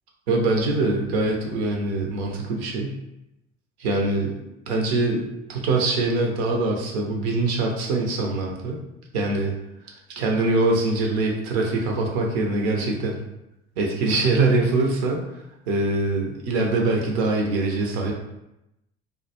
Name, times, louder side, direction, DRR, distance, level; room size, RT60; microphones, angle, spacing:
voice 1, 0.3-3.0 3.8-4.3 4.7-8.8 9.1-9.5 10.2-13.2 13.8-15.2 15.7-18.1, right 2 dB, 65° right, 0 dB, 0.6 m, -23 dB
2.1 x 2.1 x 2.8 m, 0.88 s
figure-of-eight pair, 60°, 35 cm